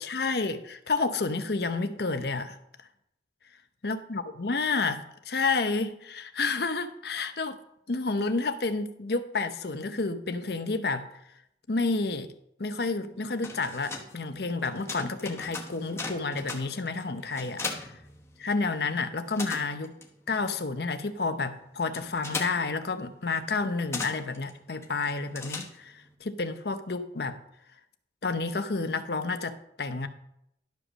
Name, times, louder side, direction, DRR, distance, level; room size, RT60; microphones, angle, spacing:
voice 1, 0.0-2.6 3.8-7.6 7.9-11.1 11.7-12.3 12.6-17.9 18.4-19.9 20.3-27.4 28.2-30.1, left 3 dB, 60° left, 9 dB, 0.8 m, -30 dB
sound 1, 13.2-18.8 19.0-26.1, left 3 dB, 15° left, 1.1 m, -39 dB
11.5 x 5.1 x 6.3 m, 0.77 s
head